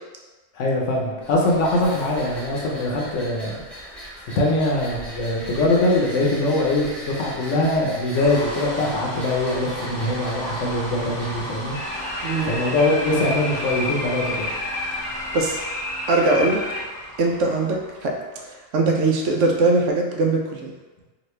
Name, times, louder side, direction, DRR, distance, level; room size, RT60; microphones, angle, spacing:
voice 1, 0.5-3.5 4.3-11.8 12.4-14.5, left 2 dB, 75° left, -2 dB, 1.0 m, -22 dB
sound 1, 1.2-15.6, equal, ahead, 0.7 m, -40 dB
sound 2, 8.1-18.4, equal, 30° left, 0.4 m, -35 dB
sound 3, 11.7-16.8, left 2 dB, 50° left, 0.9 m, -30 dB
voice 2, 16.1-16.6 17.2-18.1 18.7-20.7, right 2 dB, 75° right, 0 dB, 0.9 m, -21 dB
3.0 x 2.5 x 3.1 m, 1.2 s
omnidirectional pair, 1.3 m